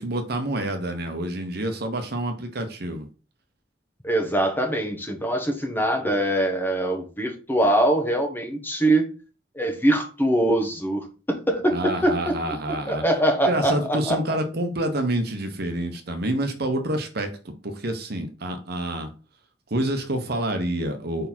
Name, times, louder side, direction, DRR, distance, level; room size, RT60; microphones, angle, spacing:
voice 1, 0.0-3.1 11.7-13.0 13.5-19.1 19.7-21.3, right 1 dB, 60° right, 6 dB, 1.2 m, -27 dB
voice 2, 4.0-9.1 9.5-12.4 12.9-14.2, right 1 dB, 10° left, 4 dB, 1.2 m, -23 dB
5.3 x 4.3 x 4.4 m, 0.34 s
head